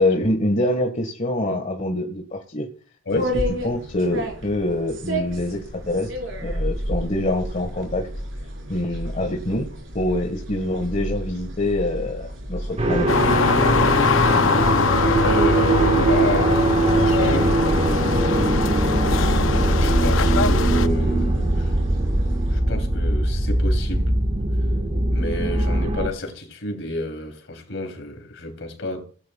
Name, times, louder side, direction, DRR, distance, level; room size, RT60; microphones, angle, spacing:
voice 1, 0.0-2.7 3.1-3.3 3.6-6.1 6.4-8.1 8.7-9.7 9.9-13.1, left 1 dB, 40° left, 1.6 m, -25 dB
sound 1, 3.1-22.6, equal, 80° right, 4.9 m, -32 dB
sound 2, 12.8-26.1, right 1 dB, 35° right, 1.5 m, -21 dB
sound 3, 13.1-20.9, left 5 dB, 90° left, 0.6 m, -23 dB
voice 2, 15.2-17.6 19.8-21.7 22.5-24.2 25.1-29.0, left 1 dB, 70° left, 3.3 m, -30 dB
17.5 x 11.0 x 2.3 m
head